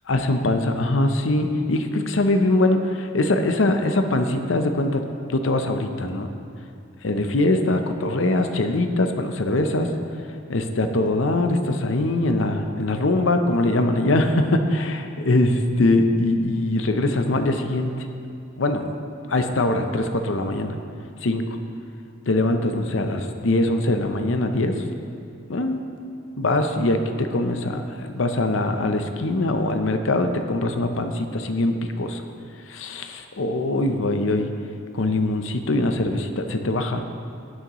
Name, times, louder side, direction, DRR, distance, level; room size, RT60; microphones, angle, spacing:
voice 1, 0.1-6.3 7.0-9.9 10.5-18.1 18.6-18.8 19.3-20.7 21.2-21.4 22.3-24.7 25.5-25.8 26.4-32.2 32.7-34.5 34.9-37.0, left 2 dB, 70° left, 6 dB, 0.7 m, -22 dB
18.0 x 6.4 x 3.1 m, 2.5 s
head